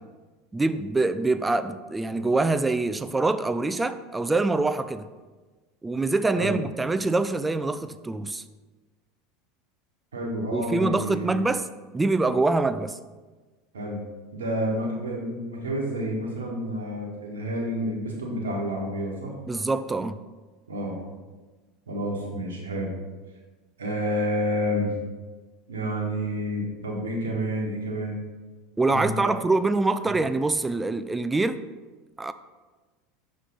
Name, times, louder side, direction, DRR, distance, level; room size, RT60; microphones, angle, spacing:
voice 1, 0.5-5.1 5.8-8.4 10.5-11.7 11.9-13.0 19.5-20.2 28.8-31.6 32.2-32.3, right 3 dB, 15° right, 12 dB, 0.3 m, -25 dB
voice 2, 10.1-11.4 13.7-14.0 14.3-19.3 20.7-21.0 21.9-22.9 23.8-24.9 25.7-28.2 28.9-29.1, equal, 85° right, -2 dB, 1.1 m, -29 dB
5.8 x 3.1 x 5.3 m, 1.3 s
hypercardioid pair, 80°, 0 cm